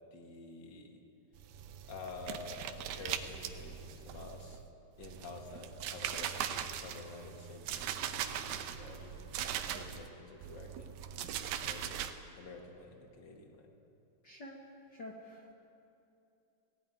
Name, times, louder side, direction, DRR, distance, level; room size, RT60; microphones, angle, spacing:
voice 1, 0.1-1.0 1.9-4.6 5.0-12.1 12.4-13.7, left 3 dB, 40° left, 3 dB, 1.9 m, -49 dB
sound 1, 1.4-4.7 5.0-10.1 10.4-12.1, right 10 dB, 85° right, 2.9 m, -40 dB
voice 2, 14.2-14.6 14.9-15.5, left 1 dB, 65° left, 0 dB, 1.0 m, -48 dB
18.5 x 17.5 x 9.3 m, 2.8 s
omnidirectional pair, 4.4 m